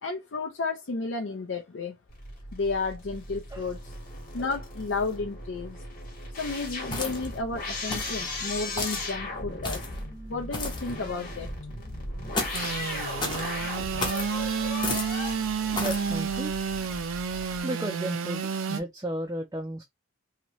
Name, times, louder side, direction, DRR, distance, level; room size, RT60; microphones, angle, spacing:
voice 1, 0.0-1.9 2.5-3.9 4.3-5.8 6.3-9.9 10.3-11.5, left 3 dB, 65° left, 0.5 m, -32 dB
sound 1, 2.1-17.6, left 2 dB, 40° left, 1.1 m, -37 dB
sound 2, 6.9-7.4 7.9-8.2 8.8-9.1 9.6-10.0 10.5-10.9 12.3-12.7 13.2-13.5 14.0-14.3 14.8-15.2 15.7-16.0, left 2 dB, 20° left, 0.8 m, -32 dB
Engine / Sawing, 12.5-18.8, right 6 dB, 85° right, 0.5 m, -30 dB
voice 2, 15.6-16.5 17.6-19.8, right 1 dB, 15° right, 0.4 m, -34 dB
2.9 x 2.6 x 2.9 m
head